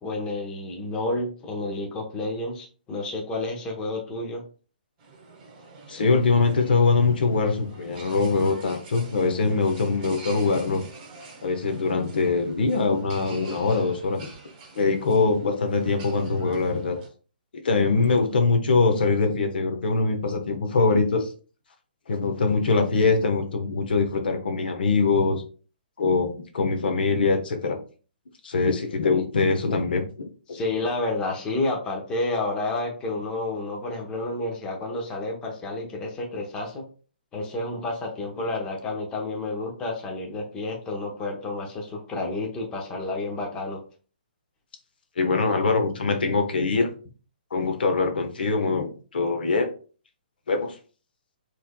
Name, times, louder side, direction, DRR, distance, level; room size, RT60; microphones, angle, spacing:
voice 1, 0.0-4.4 29.0-29.2 30.5-36.8 37.3-43.8, left 2 dB, 15° left, 0 dB, 0.9 m, -30 dB
sound 1, 5.0-17.1, right 3 dB, 30° right, 1.5 m, -46 dB
voice 2, 5.9-10.8 11.4-14.3 14.7-17.0 17.6-21.3 22.1-25.4 26.0-27.8 28.4-30.6 45.2-46.9 47.5-49.7 50.5-50.7, left 4 dB, 75° left, 5 dB, 1.0 m, -23 dB
5.9 x 3.3 x 2.2 m, 0.38 s
hypercardioid pair, 155°, 5 cm